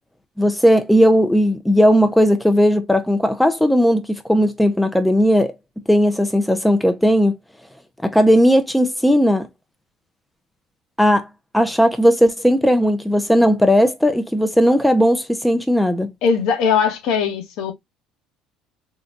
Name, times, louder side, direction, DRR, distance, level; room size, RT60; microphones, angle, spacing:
voice 1, 0.4-4.0 4.3-5.5 5.9-7.4 8.0-9.5 11.0-11.3 11.5-16.1, equal, ahead, 0.4 m, -16 dB
voice 2, 16.2-17.7, left 6 dB, 65° left, 1.0 m, -19 dB
3.8 x 2.2 x 2.4 m
cardioid pair, 140°, 0 cm